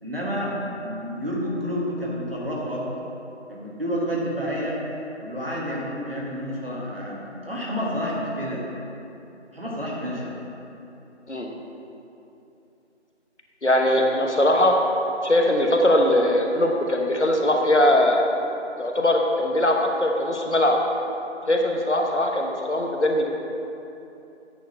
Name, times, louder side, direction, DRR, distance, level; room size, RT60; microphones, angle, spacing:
voice 1, 0.0-2.9 3.5-4.8 5.2-8.6 9.5-10.3, equal, 55° right, -5 dB, 1.8 m, -29 dB
voice 2, 13.6-14.8 15.2-18.2 18.8-20.8 21.5-23.3, left 1 dB, 70° left, 1 dB, 1.1 m, -20 dB
9.3 x 4.5 x 5.3 m, 2.9 s
figure-of-eight pair, 180°, 36 cm